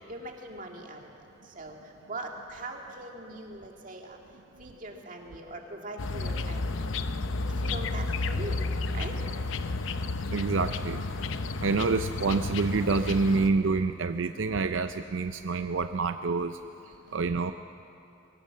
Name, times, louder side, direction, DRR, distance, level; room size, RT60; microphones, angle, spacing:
voice 1, 0.1-1.0 1.6-1.8 2.1-4.2 4.6-6.7 7.6-8.6 8.9-9.1, right 1 dB, 40° right, 1 dB, 2.2 m, -41 dB
sound 1, 6.0-13.5, left 3 dB, 80° left, 0.7 m, -32 dB
voice 2, 10.3-11.1 11.6-16.6 17.1-17.5, right 4 dB, 75° right, 9 dB, 0.5 m, -27 dB
22.5 x 18.0 x 7.5 m, 2.7 s
head